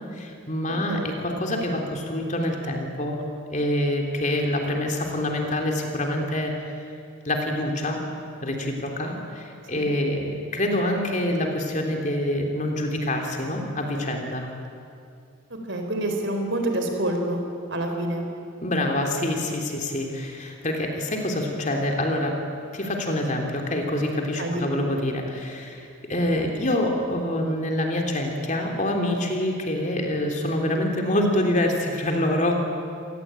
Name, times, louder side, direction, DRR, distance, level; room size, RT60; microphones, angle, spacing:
voice 1, 0.1-3.2 3.5-6.5 7.2-8.0 8.4-14.5 18.6-22.4 22.7-32.5, left 1 dB, 35° left, 2 dB, 3.3 m, -26 dB
voice 2, 15.7-17.4 17.7-18.3 24.4-24.8, right 1 dB, 55° right, 4 dB, 4.1 m, -27 dB
28.0 x 19.0 x 9.1 m, 2.4 s
head